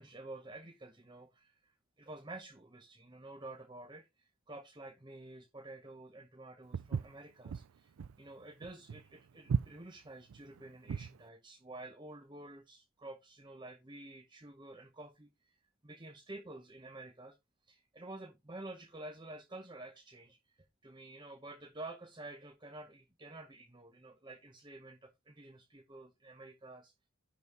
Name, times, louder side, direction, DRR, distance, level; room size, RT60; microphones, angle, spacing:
voice 1, 0.0-7.9 8.2-15.6 15.8-17.4 17.7-26.9, right 2 dB, 20° right, 1.0 m, -50 dB
Walk footsteps, 6.7-11.2, right 6 dB, 90° right, 0.4 m, -37 dB
11.0 x 4.2 x 4.7 m
head